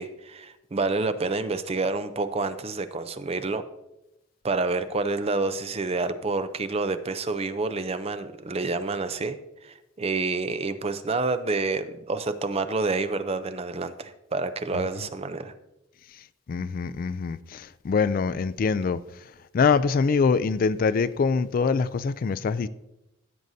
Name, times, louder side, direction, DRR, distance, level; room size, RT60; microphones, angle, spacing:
voice 1, 0.0-3.6 4.4-9.4 9.6-15.5, right 3 dB, 30° right, 0.5 m, -28 dB
voice 2, 16.1-22.7, left 5 dB, 45° left, 0.3 m, -25 dB
15.5 x 7.7 x 2.7 m
head